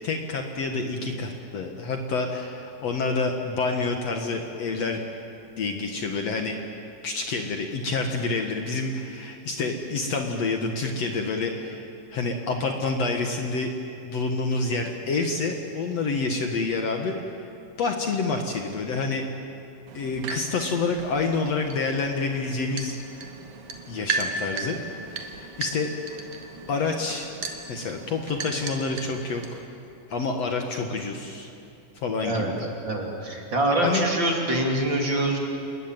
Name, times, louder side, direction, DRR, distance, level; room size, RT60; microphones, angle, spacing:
voice 1, 0.0-5.0 5.6-6.6 7.0-13.7 14.0-17.3 17.8-19.2 19.9-23.0 23.9-24.8 25.4-25.9 26.7-27.3 27.7-29.6 30.1-31.5 32.0-32.6 33.8-34.0, left 3 dB, 55° left, 3 dB, 2.3 m, -28 dB
sound 1, 19.9-29.6, right 4 dB, 65° right, 3.0 m, -36 dB
voice 2, 32.8-35.4, right 1 dB, 35° right, 0 dB, 3.3 m, -25 dB
29.5 x 21.5 x 9.1 m, 2.7 s
omnidirectional pair, 3.9 m